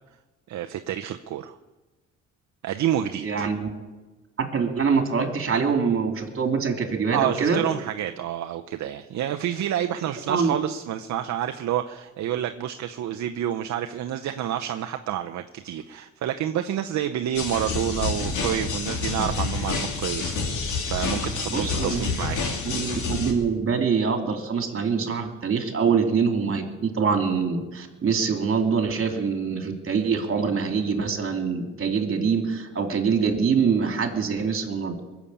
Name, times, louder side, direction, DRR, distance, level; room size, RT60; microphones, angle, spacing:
voice 1, 0.5-1.6 2.6-3.5 7.1-20.3 20.8-22.6, right 11 dB, 65° right, 6 dB, 0.8 m, -28 dB
voice 2, 3.2-3.7 4.4-7.6 10.3-10.5 21.5-22.1 22.6-35.0, right 5 dB, 45° right, 4 dB, 2.9 m, -24 dB
sound 1, 17.3-23.3, left 4 dB, 80° left, 3.2 m, -28 dB
22.0 x 7.3 x 8.6 m, 1.2 s
cardioid pair, 90°, 30 cm